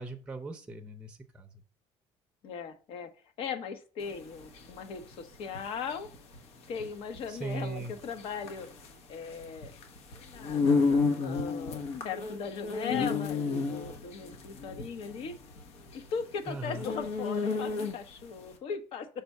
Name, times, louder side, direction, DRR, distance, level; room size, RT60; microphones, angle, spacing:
voice 1, 0.0-1.5 7.3-7.9 16.5-16.8, right 3 dB, 10° right, 5 dB, 0.6 m, -39 dB
voice 2, 2.4-3.1 3.4-6.1 6.7-8.7 9.1-9.7 10.1-15.4 15.9-19.1, left 6 dB, 60° left, 9 dB, 1.0 m, -38 dB
sound 1, 4.1-18.3, left 4 dB, 75° left, 1.2 m, -32 dB
5.9 x 3.6 x 5.4 m, 0.38 s
cardioid pair, 150°, 11 cm